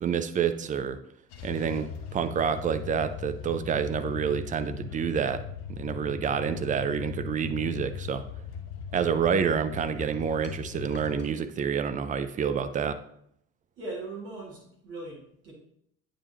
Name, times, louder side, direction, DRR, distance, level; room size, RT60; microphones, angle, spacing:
voice 1, 0.0-1.0 1.4-5.4 5.7-8.2 8.9-13.0, right 7 dB, 20° right, 10 dB, 0.3 m, -28 dB
sound 1, 1.3-11.3, left 7 dB, 55° left, 0.9 m, -39 dB
sound 2, 8.9-11.3, left 4 dB, 20° left, 1.0 m, -52 dB
voice 2, 13.8-15.5, right 2 dB, 70° right, -5 dB, 2.2 m, -39 dB
8.6 x 5.0 x 2.9 m, 0.69 s
figure-of-eight pair, 55°, 47 cm